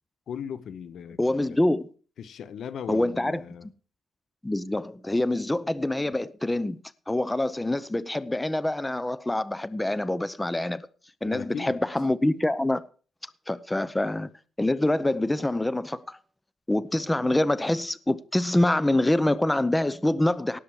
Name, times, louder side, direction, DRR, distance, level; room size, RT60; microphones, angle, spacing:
voice 1, 0.3-1.6 2.2-3.7 11.2-11.8 13.8-13.9, left 7 dB, 75° left, 0.9 m, -38 dB
voice 2, 1.2-1.9 2.9-3.4 4.4-6.8 7.1-10.9 11.2-12.8 13.5-14.3 14.6-16.2 16.7-20.6, left 1 dB, 10° left, 0.6 m, -25 dB
18.0 x 7.0 x 4.8 m
cardioid pair, 85°, 0 cm